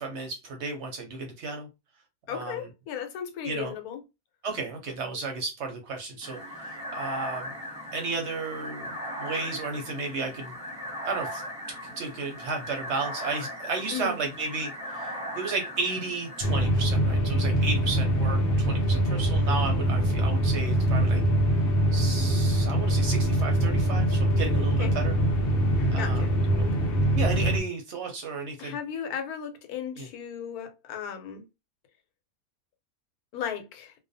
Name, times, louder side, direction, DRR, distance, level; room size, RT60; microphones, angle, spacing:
voice 1, 0.0-1.7 2.3-2.7 3.4-3.7 4.4-7.5 7.9-10.5 11.0-11.4 12.0-21.2 21.9-25.2 25.9-26.3 26.6-26.8 27.1-28.8 30.0-30.1, right 4 dB, 65° right, 0.8 m, -33 dB
voice 2, 2.3-4.0 13.9-14.2 24.8-24.9 26.0-26.3 26.7-26.8 28.6-31.4 33.3-33.9, left 8 dB, 85° left, 1.1 m, -35 dB
sound 1, 6.2-16.5, equal, 5° right, 0.8 m, -38 dB
sound 2, 16.4-27.6, right 1 dB, 60° left, 0.6 m, -24 dB
2.4 x 2.2 x 2.5 m
omnidirectional pair, 1.5 m